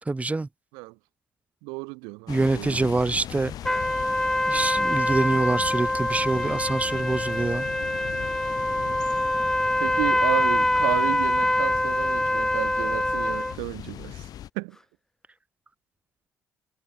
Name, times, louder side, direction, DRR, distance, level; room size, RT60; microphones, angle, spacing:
voice 1, 0.1-0.5 2.3-3.5 4.5-7.7, right 3 dB, 20° right, 1.2 m, -25 dB
voice 2, 1.6-3.0 8.7-9.0 9.8-14.3 14.5-14.8, right 31 dB, 80° right, 4.3 m, -32 dB
sound 1, 2.3-14.5, left 11 dB, 60° left, 1.3 m, -39 dB
sound 2, 3.6-13.5, left 1 dB, 5° left, 0.5 m, -25 dB
hypercardioid pair, 55°, 7 cm